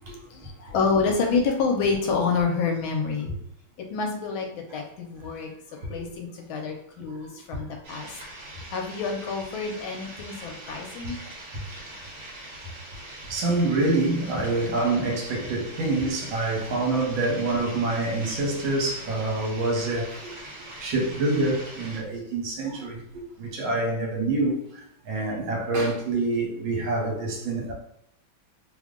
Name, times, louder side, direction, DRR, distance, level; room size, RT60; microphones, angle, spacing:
voice 1, 0.2-3.3 3.8-5.5 5.9-8.1 8.7-11.2 22.7-22.8, left 4 dB, 75° left, 1.3 m, -28 dB
sound 1, 7.8-22.0, right 1 dB, 50° right, 1.4 m, -42 dB
voice 2, 13.3-20.4 20.8-27.7, right 2 dB, 70° right, 1.6 m, -26 dB
3.4 x 2.1 x 3.6 m
omnidirectional pair, 2.3 m